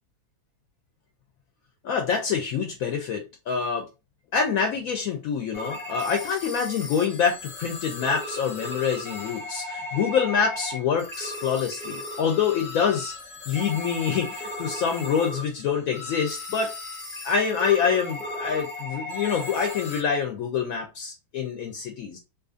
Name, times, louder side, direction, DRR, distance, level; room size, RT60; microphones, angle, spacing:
voice 1, 1.8-3.9 4.3-13.1 13.5-16.7 17.2-22.2, left 6 dB, 70° left, 1.0 m, -26 dB
sound 1, 5.5-20.0, left 2 dB, 15° left, 0.3 m, -36 dB
2.6 x 2.5 x 2.4 m
omnidirectional pair, 1.7 m